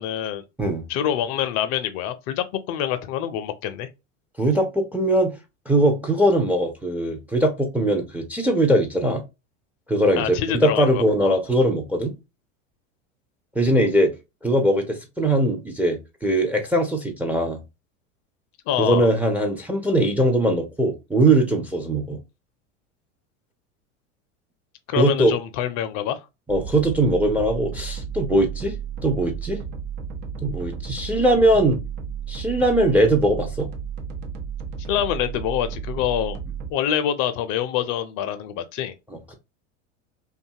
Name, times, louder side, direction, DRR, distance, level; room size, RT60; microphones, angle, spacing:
voice 1, 0.0-0.4 0.9-3.9 10.2-11.4 18.7-19.1 24.9-26.2 34.9-36.4 36.7-38.9, left 10 dB, 50° left, 0.5 m, -26 dB
voice 2, 4.4-5.3 5.7-9.2 9.9-12.1 13.6-14.1 14.4-17.6 18.8-22.2 25.0-25.3 26.5-28.8 29.0-29.6 30.4-31.8 32.3-33.7, right 1 dB, 5° right, 0.4 m, -21 dB
sound 1, 26.5-36.7, right 7 dB, 75° right, 0.8 m, -33 dB
2.6 x 2.3 x 2.6 m
hypercardioid pair, 90°, 38 cm